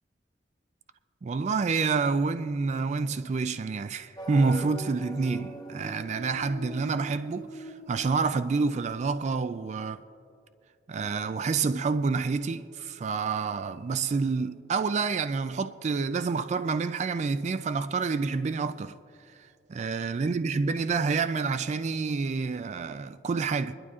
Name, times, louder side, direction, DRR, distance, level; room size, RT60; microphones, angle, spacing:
voice 1, 1.2-10.0 10.9-18.9 19.7-23.7, right 4 dB, 40° right, 0.3 m, -28 dB
sound 1, 4.2-9.0, equal, 25° left, 0.8 m, -42 dB
24.0 x 11.5 x 2.4 m
head